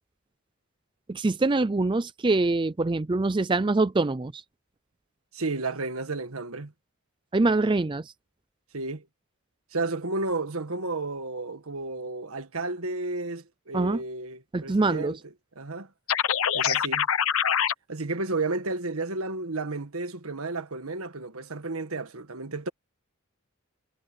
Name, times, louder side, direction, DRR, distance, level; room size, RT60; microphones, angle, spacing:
voice 1, 1.1-4.4 7.3-8.1 13.7-14.0 14.5-15.1, right 3 dB, 20° right, 0.4 m, -24 dB
voice 2, 5.3-6.7 8.7-9.1 9.7-15.2 15.5-15.9 16.5-17.1 17.9-22.7, right 3 dB, 75° right, 1.6 m, -32 dB
sound 1, 16.1-17.7, left 8 dB, 70° left, 0.8 m, -24 dB
head